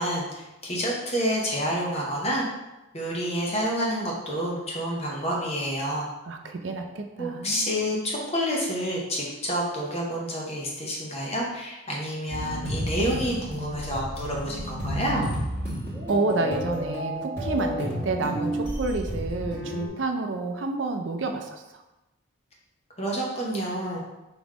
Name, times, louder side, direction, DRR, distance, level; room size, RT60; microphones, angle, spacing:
voice 1, 0.0-2.4 2.9-6.1 7.2-15.3 23.0-24.0, equal, 30° left, -3 dB, 0.9 m, -28 dB
voice 2, 6.3-7.7 16.1-21.6, right 3 dB, 60° right, 5 dB, 0.4 m, -29 dB
sound 1, 12.3-19.9, equal, 10° left, 1.5 m, -31 dB
3.6 x 3.0 x 4.8 m, 1.0 s
head